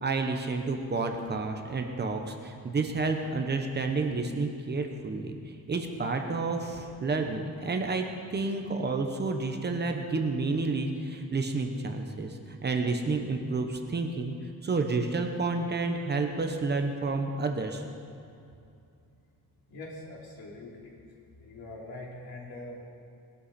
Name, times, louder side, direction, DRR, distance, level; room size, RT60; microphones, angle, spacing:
voice 1, 0.0-5.4 5.7-8.0 8.3-14.3 14.6-17.8, right 3 dB, 30° right, 4 dB, 1.0 m, -30 dB
voice 2, 19.7-20.9 21.4-22.8, left 2 dB, 70° left, -3 dB, 3.4 m, -43 dB
20.5 x 12.0 x 4.3 m, 2.5 s
wide cardioid pair, 175°, 37 cm